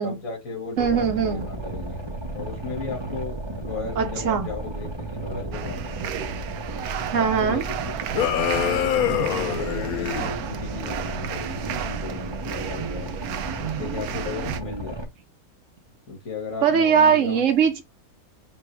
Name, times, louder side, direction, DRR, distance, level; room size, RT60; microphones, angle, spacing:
voice 1, 0.0-2.0 2.3-4.9 5.1-5.8 7.1-8.0 8.3-13.1 13.6-15.0 16.1-17.4, left 4 dB, 65° left, 1.9 m, -35 dB
Boat Water vehicle, 0.8-15.0, right 2 dB, 25° right, 0.7 m, -34 dB
voice 2, 0.8-1.4 4.0-4.5 7.1-7.6 16.6-17.8, right 7 dB, 65° right, 1.1 m, -21 dB
sound 1, 5.5-14.6, right 10 dB, 85° right, 1.1 m, -33 dB
sound 2, 8.1-10.3, left 10 dB, 80° left, 1.1 m, -24 dB
5.4 x 2.5 x 3.2 m
omnidirectional pair, 1.5 m